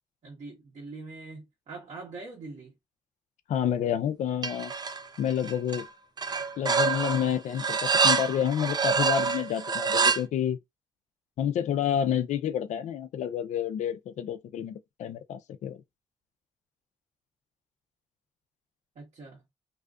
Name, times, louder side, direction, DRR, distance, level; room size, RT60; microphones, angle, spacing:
voice 1, 0.2-2.7 18.9-19.4, right 3 dB, 65° right, 1.2 m, -43 dB
voice 2, 3.5-4.7 5.2-5.9 6.6-10.6 11.4-15.8, left 9 dB, 75° left, 0.4 m, -29 dB
sound 1, 4.4-5.0 5.3-5.8 6.2-10.2, right 5 dB, 35° right, 0.5 m, -26 dB
2.7 x 2.4 x 2.3 m
cardioid pair, 60°, 12 cm